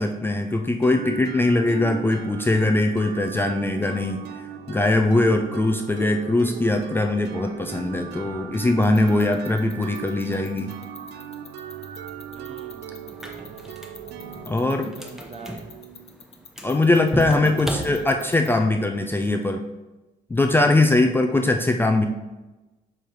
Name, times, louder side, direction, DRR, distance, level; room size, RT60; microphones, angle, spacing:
voice 1, 0.0-10.7 14.5-14.9 16.6-19.6 20.3-22.1, left 2 dB, 15° left, 4 dB, 0.4 m, -21 dB
sound 1, 0.8-16.4, right 9 dB, 85° right, 0.5 m, -39 dB
sound 2, 8.8-18.5, left 7 dB, 35° left, 0.8 m, -44 dB
voice 2, 12.1-13.7 14.7-15.8 17.4-18.4, right 4 dB, 35° right, 6 dB, 0.7 m, -43 dB
sound 3, 13.1-18.6, equal, ahead, 0.9 m, -35 dB
6.8 x 3.2 x 4.4 m, 1.1 s
cardioid pair, 110°, 17 cm